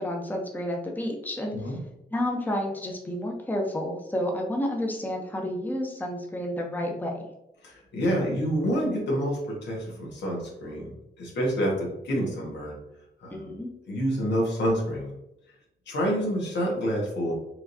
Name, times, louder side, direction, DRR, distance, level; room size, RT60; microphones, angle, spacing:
voice 1, 0.0-1.6 2.1-7.2 13.3-13.7, left 1 dB, 10° left, 0 dB, 0.7 m, -30 dB
voice 2, 7.6-12.8 13.2-13.5 13.9-15.1 15.9-17.3, equal, 90° left, -2 dB, 1.4 m, -28 dB
4.8 x 3.2 x 2.7 m, 0.90 s
cardioid pair, 105°, 18 cm